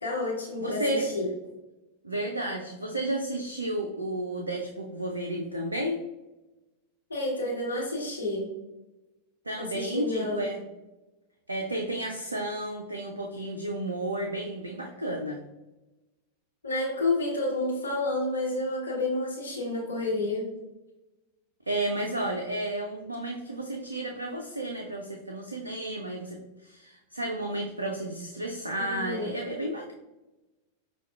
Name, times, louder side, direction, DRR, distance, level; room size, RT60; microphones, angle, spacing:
voice 1, 0.0-1.2 7.1-8.5 9.6-10.5 16.6-20.5 28.8-29.3, left 2 dB, 75° left, -3 dB, 1.0 m, -30 dB
voice 2, 0.6-1.1 2.0-6.0 9.5-10.6 11.5-15.4 21.7-29.9, right 1 dB, 80° right, 1 dB, 0.3 m, -32 dB
5.4 x 2.3 x 2.3 m, 1.0 s
figure-of-eight pair, 90°, 0 cm